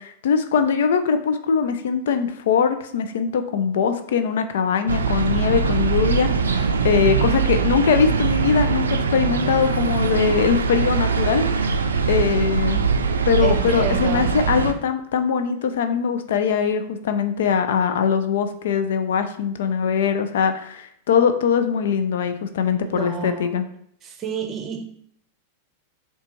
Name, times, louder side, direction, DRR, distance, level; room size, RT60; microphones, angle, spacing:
voice 1, 0.0-11.8 12.1-12.9 13.3-23.6, left 6 dB, 70° left, 0.4 m, -22 dB
sound 1, 4.9-14.7, right 5 dB, 85° right, 0.4 m, -22 dB
voice 2, 13.4-14.4 22.7-23.6 24.0-24.8, right 6 dB, 30° right, 0.7 m, -30 dB
6.5 x 2.3 x 3.0 m
hypercardioid pair, 100°, 0 cm